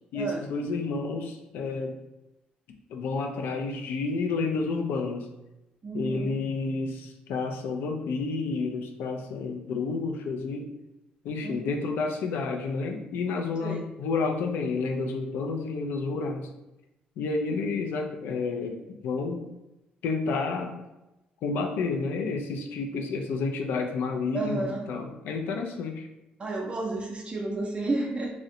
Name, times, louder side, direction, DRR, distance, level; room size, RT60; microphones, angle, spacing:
voice 1, 0.1-2.0 2.9-5.3 5.9-10.7 11.2-16.5 17.2-19.4 20.0-20.7 21.4-26.1, left 4 dB, 80° left, 3 dB, 0.4 m, -30 dB
voice 2, 5.8-6.3 11.4-11.6 13.6-13.9 24.3-24.9 26.4-28.3, right 2 dB, 35° right, 0 dB, 0.4 m, -31 dB
2.5 x 2.0 x 2.7 m, 0.95 s
cardioid pair, 85°, 3 cm